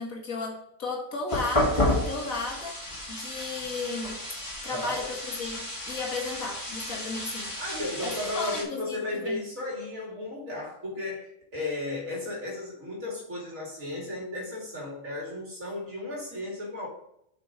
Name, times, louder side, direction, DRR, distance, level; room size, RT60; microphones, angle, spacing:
voice 1, 0.0-2.8 3.1-4.2 4.6-7.6 8.0-9.4, left 3 dB, 80° left, 2.0 m, -34 dB
sound 1, 1.3-8.6, left 1 dB, 25° left, 1.8 m, -32 dB
voice 2, 4.7-5.1 7.6-16.9, left 2 dB, 75° right, 2.8 m, -34 dB
7.2 x 5.6 x 3.8 m
omnidirectional pair, 1.4 m